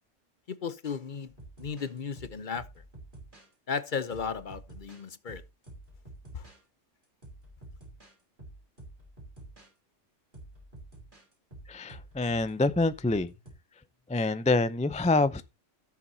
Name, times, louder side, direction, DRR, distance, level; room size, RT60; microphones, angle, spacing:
voice 1, 0.5-1.3 1.6-2.6 3.7-5.4 6.3-6.4, left 6 dB, 45° left, 0.9 m, -35 dB
sound 1, 1.3-3.5 4.1-6.6 7.2-8.1 8.4-9.7 10.3-13.5, right 2 dB, 40° right, 4.6 m, -49 dB
voice 2, 11.7-13.3 14.1-15.5, left 2 dB, 10° left, 0.3 m, -26 dB
16.5 x 7.1 x 2.8 m
omnidirectional pair, 1.2 m